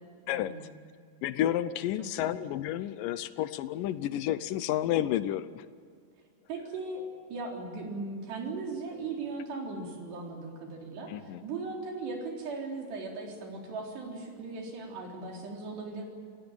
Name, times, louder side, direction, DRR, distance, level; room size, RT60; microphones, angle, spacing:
voice 1, 0.3-0.7 2.2-2.4 6.5-7.0 7.3-16.0, right 3 dB, 80° right, 0 dB, 6.0 m, -38 dB
voice 2, 1.2-5.6 11.1-11.4, left 12 dB, 80° left, 14 dB, 2.0 m, -31 dB
28.5 x 17.0 x 8.9 m, 2.1 s
omnidirectional pair, 4.8 m